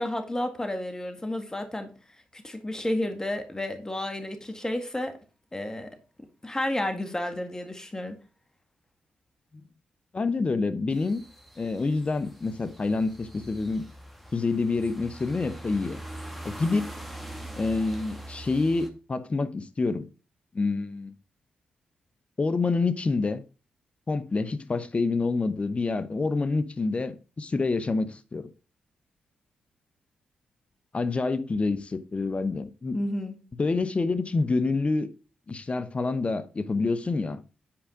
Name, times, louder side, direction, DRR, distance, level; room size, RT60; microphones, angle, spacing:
voice 1, 0.0-1.9 2.3-5.1 5.5-5.9 6.4-8.2 32.9-33.4, left 1 dB, 20° left, 1.9 m, -31 dB
voice 2, 10.1-11.2 11.6-13.9 14.3-16.0 16.4-16.9 17.5-20.1 20.5-21.1 22.4-23.4 24.1-28.5 30.9-33.0 33.6-35.1 35.5-37.4, left 3 dB, 40° left, 1.0 m, -27 dB
sound 1, 10.9-18.9, right 1 dB, 5° left, 2.0 m, -42 dB
8.9 x 5.0 x 5.0 m
supercardioid pair, 50°, 3 cm